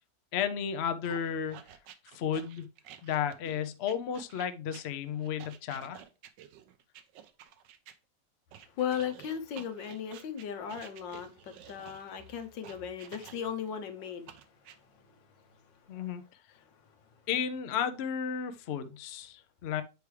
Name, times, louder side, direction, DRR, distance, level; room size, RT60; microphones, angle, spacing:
voice 1, 0.3-1.6 2.1-2.7 3.0-6.0 15.9-16.2 17.3-19.8, left 8 dB, 60° left, 0.6 m, -33 dB
sound 1, 1.0-8.0 8.5-13.7 14.3-14.8, right 10 dB, 85° right, 1.3 m, -51 dB
voice 2, 8.5-16.2 16.6-17.1, left 8 dB, 85° left, 1.6 m, -38 dB
8.1 x 4.7 x 3.3 m
omnidirectional pair, 1.9 m